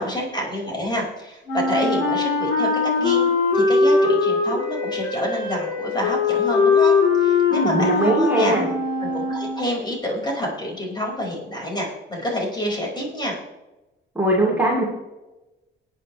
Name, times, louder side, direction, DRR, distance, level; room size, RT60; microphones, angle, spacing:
voice 1, 0.0-2.7 3.0-3.3 3.5-8.6 9.0-13.4, equal, 20° left, -2 dB, 5.2 m, -28 dB
Wind instrument woodwind instrument, 1.5-9.8, left 4 dB, 80° left, 3.3 m, -21 dB
voice 2, 7.5-8.7 14.2-14.8, right 1 dB, 10° right, -4 dB, 3.3 m, -20 dB
20.0 x 9.0 x 3.3 m, 1.0 s
cardioid pair, 90°, 20 cm